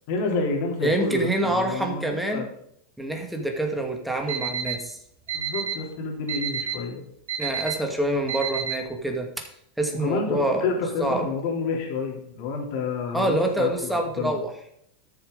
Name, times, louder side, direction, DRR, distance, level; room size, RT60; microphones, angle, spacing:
voice 1, 0.1-2.5 5.3-7.0 9.9-14.4, left 4 dB, 60° left, 1 dB, 3.2 m, -29 dB
voice 2, 0.8-2.5 3.0-5.0 7.4-9.4 9.8-10.7 11.0-11.3 13.1-14.5, right 1 dB, 5° right, 2 dB, 2.1 m, -26 dB
Alarm, 4.3-4.7 5.3-5.7 6.3-6.7 7.3-7.7 8.3-8.7, right 10 dB, 85° right, 2.9 m, -28 dB
13.5 x 7.0 x 3.9 m, 0.72 s
hypercardioid pair, 115°, 0 cm